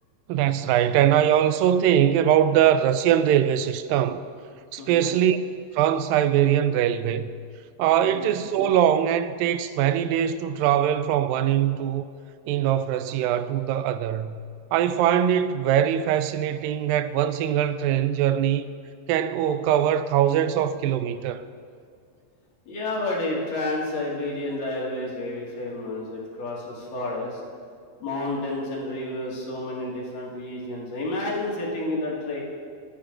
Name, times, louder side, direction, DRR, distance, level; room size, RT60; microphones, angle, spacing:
voice 1, 0.3-4.2 4.7-5.4 5.7-7.3 7.8-12.0 12.5-14.4 14.7-18.6 19.1-21.4, right 10 dB, 90° right, 2.3 m, -22 dB
voice 2, 4.8-5.1 8.0-8.3 22.7-27.4 28.0-32.4, left 2 dB, 75° left, 3.6 m, -30 dB
22.5 x 9.8 x 2.6 m
omnidirectional pair, 3.9 m